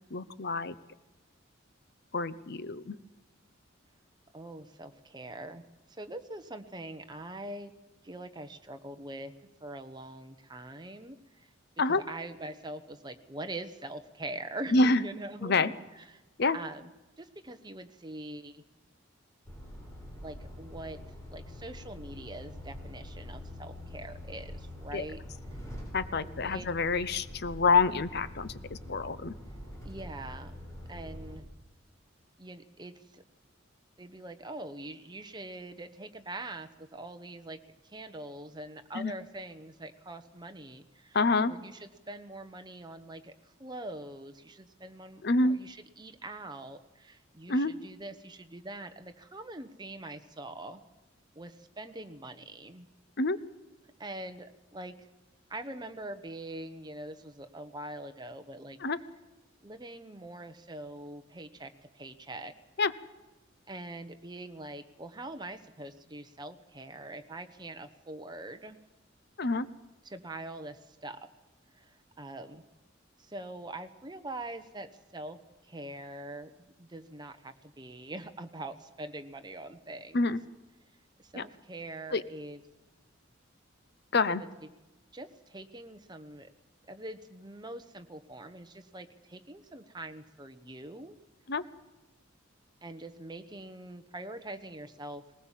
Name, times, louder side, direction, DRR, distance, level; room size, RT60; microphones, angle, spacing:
voice 1, 0.1-0.8 2.1-3.0 11.8-12.0 14.7-15.0 15.4-15.7 16.4-16.6 24.9-25.0 25.9-29.3 38.9-39.1 41.1-41.5 45.2-45.6 47.5-47.7 53.2-53.4 58.8-59.0 62.8-62.9 69.4-69.7 80.1-80.4 81.4-81.5 82.1-82.2 84.1-84.4 91.5-91.6, left 3 dB, 55° left, 15 dB, 0.8 m, -27 dB
voice 2, 4.3-5.6 5.9-7.7 8.0-9.3 9.6-11.5 11.9-16.2 16.5-16.9 17.2-18.6 20.2-21.0 21.3-25.2 26.2-26.7 29.8-30.5 30.9-31.4 32.4-33.2 34.0-37.6 37.8-41.2 41.5-50.8 51.3-52.9 54.0-55.1 55.5-58.8 59.6-62.5 63.7-68.8 70.0-71.3 71.7-72.6 73.2-75.4 75.6-80.4 81.2-82.6 84.3-84.5 85.1-86.5 86.8-91.2 92.8-95.2, right 2 dB, 20° right, 8 dB, 1.1 m, -43 dB
Truck, 19.5-31.4, left 1 dB, 15° left, 4.9 m, -45 dB
20.0 x 19.0 x 7.4 m, 1.1 s
head